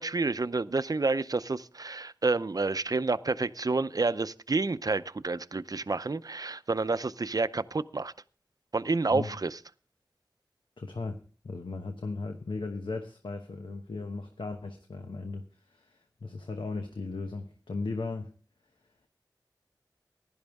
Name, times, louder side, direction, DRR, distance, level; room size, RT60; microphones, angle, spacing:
voice 1, 0.0-8.1 8.7-9.6, right 3 dB, 50° right, 0.6 m, -29 dB
voice 2, 10.8-11.2 11.4-18.3, left 3 dB, 85° left, 1.0 m, -37 dB
16.0 x 11.0 x 3.5 m
wide cardioid pair, 40°, 8 cm